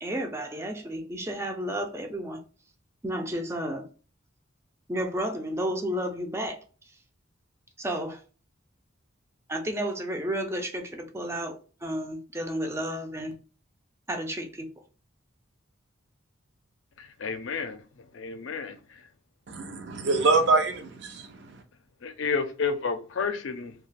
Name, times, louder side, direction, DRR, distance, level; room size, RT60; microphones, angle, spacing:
voice 1, 0.0-2.4 3.0-3.9 4.9-6.6 7.8-8.2 9.5-13.4 14.1-14.7, equal, 15° right, 0.4 m, -32 dB
voice 2, 17.0-17.8 18.1-19.0 22.0-23.7, left 5 dB, 70° left, 0.4 m, -31 dB
voice 3, 19.5-21.6, right 3 dB, 60° right, 0.6 m, -25 dB
2.3 x 2.3 x 3.2 m
head